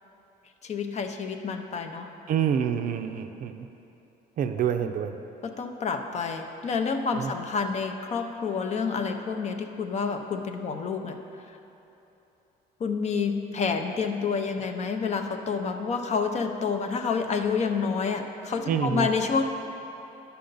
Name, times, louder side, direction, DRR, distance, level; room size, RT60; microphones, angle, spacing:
voice 1, 0.6-2.1 4.8-4.9 5.4-11.2 12.8-19.4, left 5 dB, 40° left, 6 dB, 0.6 m, -28 dB
voice 2, 2.3-3.7 4.4-5.2 7.1-7.3 18.7-19.1, right 8 dB, 55° right, 8 dB, 0.5 m, -27 dB
10.0 x 5.7 x 3.9 m, 3.0 s
cardioid pair, 110°, 17 cm